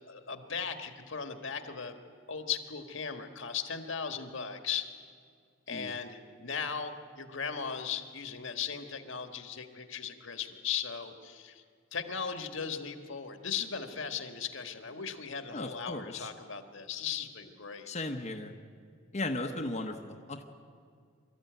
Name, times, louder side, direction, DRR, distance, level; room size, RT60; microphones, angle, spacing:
voice 1, 0.1-2.0 2.3-4.9 5.7-11.6 11.9-17.9 19.4-19.6, left 7 dB, 70° left, 7 dB, 1.6 m, -37 dB
voice 2, 15.5-16.3 17.9-18.5 19.1-20.4, left 2 dB, 35° left, 3 dB, 1.0 m, -36 dB
24.5 x 14.0 x 9.3 m, 2.2 s
head